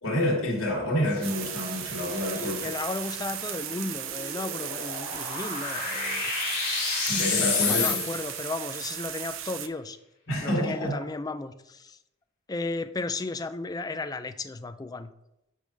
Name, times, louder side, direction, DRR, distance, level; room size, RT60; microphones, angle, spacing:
voice 1, 0.0-2.7 7.1-8.0 10.3-10.9, left 1 dB, 80° left, -3 dB, 2.9 m, -28 dB
sound 1, 1.0-8.5, left 4 dB, 40° left, 2.3 m, -32 dB
sound 2, 1.2-9.7, right 12 dB, 70° right, 0.5 m, -36 dB
voice 2, 2.3-6.3 7.7-10.0 10.4-12.0 12.5-15.1, left 3 dB, 20° left, 12 dB, 0.4 m, -34 dB
8.2 x 3.6 x 6.5 m, 0.85 s
head